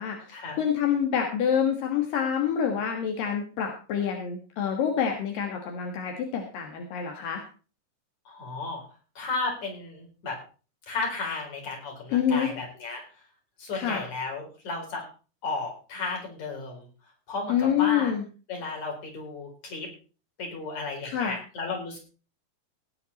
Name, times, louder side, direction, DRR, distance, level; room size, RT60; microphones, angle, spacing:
voice 1, 0.0-7.4 12.1-12.5 13.7-14.0 17.5-18.2 21.0-21.4, left 8 dB, 80° left, 3 dB, 3.3 m, -27 dB
voice 2, 8.3-8.8 9.2-10.4 10.9-13.0 13.6-15.1 15.4-16.9 17.3-18.1 18.5-19.9 20.4-22.0, left 3 dB, 55° left, 1 dB, 5.6 m, -34 dB
18.0 x 9.5 x 4.2 m, 0.37 s
omnidirectional pair, 3.9 m